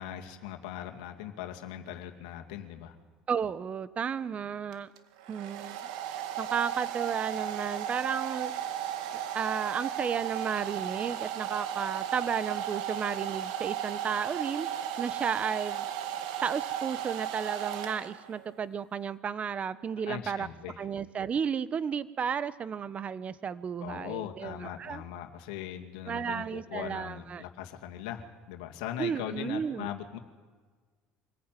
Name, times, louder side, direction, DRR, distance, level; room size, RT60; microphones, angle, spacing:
voice 1, 0.0-3.0 20.1-20.8 23.8-30.2, left 11 dB, 85° left, 4 dB, 2.3 m, -40 dB
voice 2, 3.3-4.9 5.3-8.5 9.3-15.9 16.4-20.5 20.8-25.0 26.1-27.4 29.0-29.9, right 7 dB, 35° right, 16 dB, 1.1 m, -33 dB
Domestic sounds home sounds, 4.7-18.4, right 10 dB, 85° right, 2.0 m, -35 dB
25.0 x 15.0 x 9.3 m, 1.5 s
supercardioid pair, 90°, 4 cm